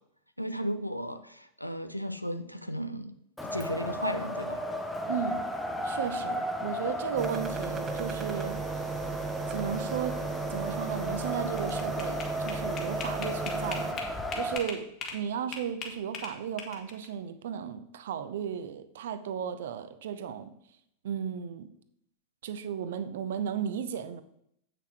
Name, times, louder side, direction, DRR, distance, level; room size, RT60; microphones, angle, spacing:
voice 1, 0.4-3.2 3.4-4.7, equal, 90° left, 0.6 m, -35 dB
Wind, 3.4-14.6, left 1 dB, 10° left, 0.9 m, -35 dB
voice 2, 5.1-5.5 5.8-8.6 9.5-10.2 10.5-14.0 14.3-20.5 21.0-21.7 22.4-24.2, right 8 dB, 60° right, 0.7 m, -35 dB
sound 1, 7.2-13.9, right 4 dB, 20° right, 1.0 m, -35 dB
sound 2, 11.6-15.2 15.5-17.1, left 5 dB, 35° left, 1.7 m, -39 dB
8.3 x 6.0 x 4.6 m
figure-of-eight pair, 90°, 0 cm